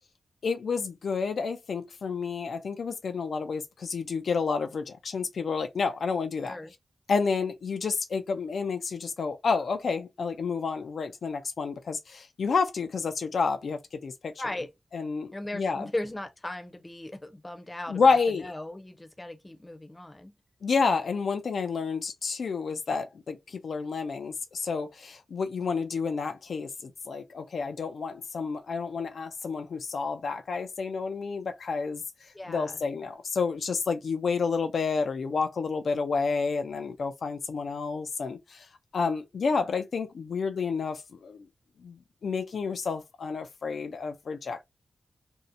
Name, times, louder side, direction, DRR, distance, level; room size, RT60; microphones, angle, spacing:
voice 1, 0.4-6.6 7.1-14.3 14.9-15.9 17.9-18.5 20.6-32.0 32.5-38.7 38.9-41.4 41.8-44.6, left 5 dB, 75° left, 0.3 m, -30 dB
voice 2, 14.4-14.7 15.3-20.3 32.3-32.8, left 1 dB, 20° left, 0.6 m, -37 dB
2.6 x 2.0 x 2.4 m
wide cardioid pair, 90°, 0 cm